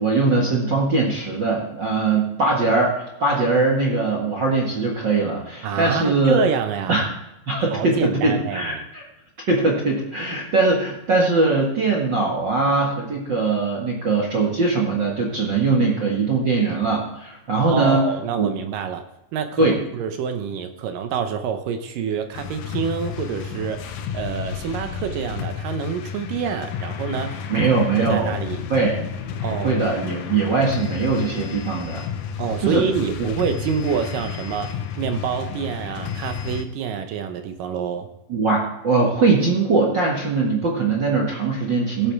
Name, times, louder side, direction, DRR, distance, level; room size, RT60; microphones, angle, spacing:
voice 1, 0.0-6.4 6.9-7.1 7.5-9.0 9.5-18.1 18.3-18.5 19.6-19.8 27.5-28.3 28.7-29.0 29.6-32.0 32.6-32.8 38.3-42.1, right 3 dB, 50° right, -1 dB, 1.4 m, -21 dB
voice 2, 5.6-7.1 7.7-8.9 17.7-27.7 28.0-28.6 29.4-29.8 32.4-38.1, right 7 dB, 75° right, 8 dB, 2.1 m, -27 dB
sound 1, 22.3-36.6, left 7 dB, 70° left, 2.0 m, -31 dB
16.5 x 8.7 x 3.4 m, 0.91 s
omnidirectional pair, 4.6 m